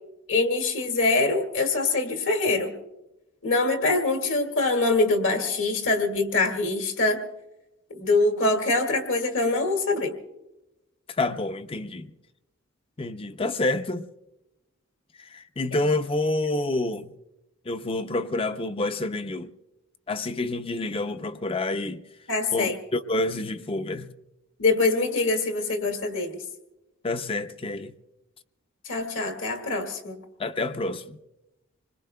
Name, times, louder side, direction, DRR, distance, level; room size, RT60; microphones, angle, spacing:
voice 1, 0.3-2.7 3.4-7.2 7.9-10.2 22.3-22.7 24.6-26.4 28.9-30.2, left 3 dB, 65° left, 1.9 m, -24 dB
voice 2, 11.2-12.1 13.0-14.1 15.2-17.1 17.7-19.5 20.1-22.0 22.5-24.1 27.0-27.9 30.4-31.2, left 2 dB, 25° left, 0.5 m, -28 dB
26.0 x 21.0 x 2.2 m
head